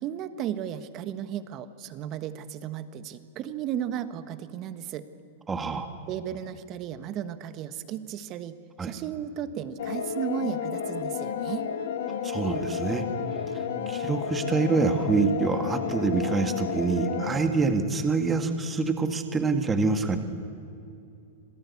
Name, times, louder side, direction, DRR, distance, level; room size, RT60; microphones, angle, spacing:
voice 1, 0.0-5.1 6.1-11.7, right 9 dB, 40° right, 12 dB, 1.3 m, -34 dB
voice 2, 5.5-5.9 8.8-8.9 12.2-13.0 13.5-20.2, right 4 dB, 15° right, 7 dB, 1.8 m, -26 dB
sound 1, 9.8-17.8, left 7 dB, 75° left, 1.8 m, -32 dB
26.5 x 17.5 x 8.5 m, 2.6 s
hypercardioid pair, 130°, 0 cm